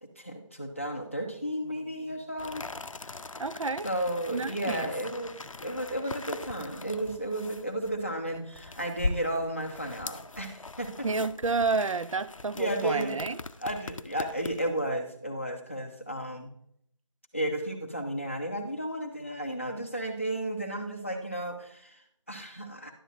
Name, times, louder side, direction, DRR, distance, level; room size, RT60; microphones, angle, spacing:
voice 1, 0.0-2.6 3.8-5.4 5.6-11.1 11.8-11.9 12.5-13.2 13.6-16.5 17.3-22.9, right 1 dB, 25° left, 3 dB, 0.7 m, -33 dB
sound 1, 2.4-14.8, left 3 dB, 85° left, 0.5 m, -40 dB
voice 2, 3.4-3.9 4.3-4.9 11.0-13.4, right 4 dB, 80° right, 14 dB, 0.4 m, -30 dB
11.0 x 7.6 x 2.5 m, 0.68 s
figure-of-eight pair, 175°, 16 cm